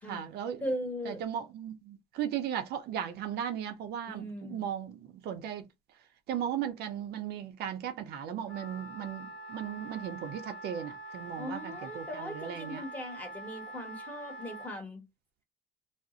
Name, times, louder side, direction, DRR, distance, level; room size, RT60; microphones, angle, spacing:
voice 1, 0.1-0.6 1.1-5.6 6.3-12.8, right 9 dB, 75° right, 0.5 m, -36 dB
voice 2, 0.6-1.2 4.1-4.7 11.4-15.1, equal, 10° left, 1.2 m, -39 dB
Wind instrument woodwind instrument, 8.5-14.8, right 1 dB, 65° left, 1.0 m, -45 dB
2.4 x 2.0 x 3.7 m
cardioid pair, 110°, 17 cm